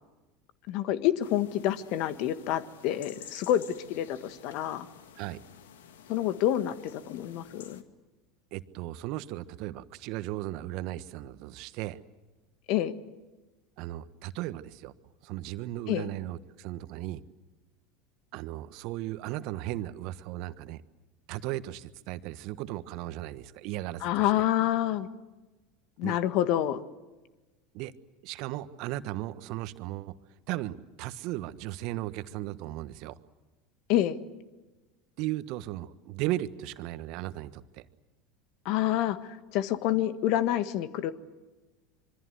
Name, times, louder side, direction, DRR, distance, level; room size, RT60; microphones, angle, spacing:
voice 1, 0.7-4.9 6.1-7.8 12.7-12.9 15.9-16.1 24.0-25.1 26.0-26.8 33.9-34.2 38.6-41.1, left 12 dB, 60° left, 12 dB, 1.6 m, -28 dB
sound 1, 1.2-7.8, left 8 dB, 75° left, 1.9 m, -51 dB
voice 2, 8.5-12.0 13.8-14.9 15.2-17.2 18.3-20.8 21.3-24.3 26.0-26.2 27.7-27.9 28.2-30.1 30.5-33.2 35.2-37.9, right 15 dB, 60° right, 13 dB, 1.3 m, -36 dB
26.0 x 24.0 x 8.0 m, 1.2 s
hypercardioid pair, 80°, 0 cm